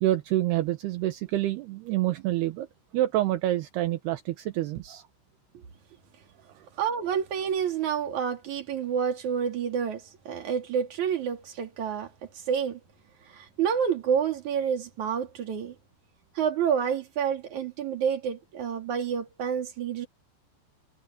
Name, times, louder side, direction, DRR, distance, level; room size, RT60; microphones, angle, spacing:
voice 1, 0.0-2.7 2.9-5.0, right 14 dB, 75° right, 2.6 m, -27 dB
voice 2, 6.8-12.8 13.3-15.8 16.4-20.1, right 7 dB, 45° right, 3.6 m, -29 dB
omnidirectional pair, 5.5 m